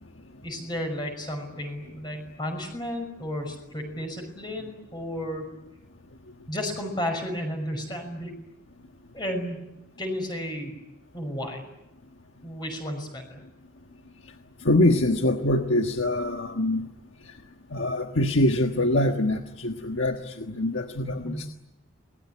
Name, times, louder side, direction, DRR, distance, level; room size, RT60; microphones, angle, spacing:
voice 1, 0.4-5.4 6.5-8.3 9.1-9.6 10.0-10.8 11.1-11.7 12.4-13.4 21.2-21.5, equal, 20° left, 3 dB, 5.9 m, -33 dB
voice 2, 14.6-16.9 17.7-21.5, left 1 dB, 70° left, 4 dB, 1.4 m, -24 dB
28.0 x 21.0 x 10.0 m, 0.93 s
head